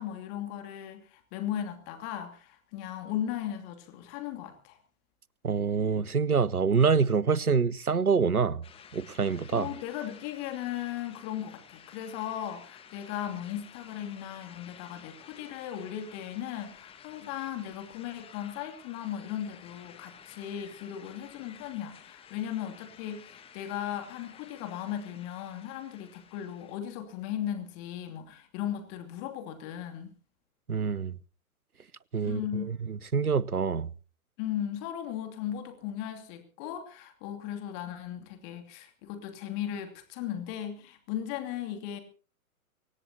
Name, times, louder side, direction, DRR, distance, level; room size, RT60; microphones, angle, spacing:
voice 1, 0.0-4.8 9.5-30.1 32.2-32.7 34.4-42.0, left 10 dB, 30° left, 2.7 m, -37 dB
voice 2, 5.4-8.6 8.9-9.7 30.7-31.1 32.1-32.4 32.9-33.9, right 5 dB, 85° right, 0.8 m, -26 dB
sound 1, 8.6-26.8, left 8 dB, 15° left, 1.5 m, -53 dB
24.0 x 19.0 x 2.9 m
figure-of-eight pair, 115°, 43 cm